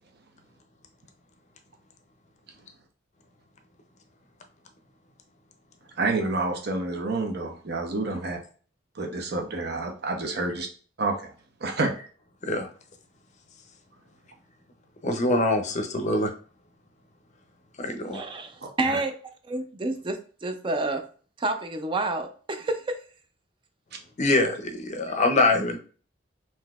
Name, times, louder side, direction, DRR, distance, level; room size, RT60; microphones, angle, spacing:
voice 1, 6.0-8.4 9.0-10.7 11.0-11.1 11.6-11.9 18.8-19.0, right 3 dB, 55° right, 3 dB, 0.7 m, -28 dB
voice 2, 15.0-16.3 17.8-18.2 24.2-25.8, left 2 dB, 40° left, 6 dB, 0.5 m, -24 dB
voice 3, 18.1-19.1 19.5-21.0 21.4-23.0, right 2 dB, 25° right, 7 dB, 0.4 m, -29 dB
3.8 x 2.7 x 2.3 m, 0.41 s
head